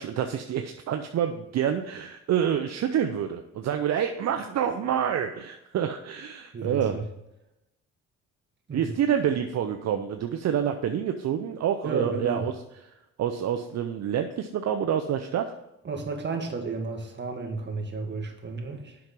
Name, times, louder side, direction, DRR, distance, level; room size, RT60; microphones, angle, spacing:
voice 1, 0.0-7.0 8.7-12.5 13.2-15.5, right 9 dB, 60° right, 6 dB, 0.7 m, -27 dB
voice 2, 6.5-7.0 8.7-9.0 11.8-12.5 15.8-19.0, right 3 dB, 35° right, 3 dB, 1.8 m, -32 dB
7.7 x 6.0 x 5.3 m, 0.93 s
cardioid pair, 90°, 30 cm